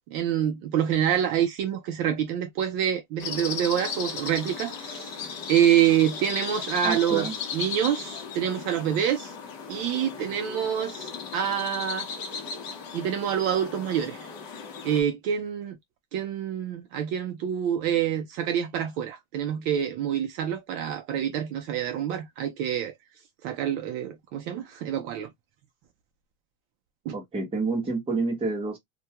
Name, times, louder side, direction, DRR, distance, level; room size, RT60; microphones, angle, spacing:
voice 1, 0.1-5.1 5.5-9.3 9.7-12.1 12.9-14.3 14.8-15.8 16.1-22.9 23.4-25.3 27.1-27.2, right 9 dB, 55° right, 0.5 m, -26 dB
sound 1, 3.2-15.0, left 6 dB, 45° left, 0.8 m, -36 dB
voice 2, 6.8-7.4 27.1-28.8, right 3 dB, 10° right, 0.8 m, -28 dB
2.2 x 2.2 x 2.8 m
cardioid pair, 165°, 47 cm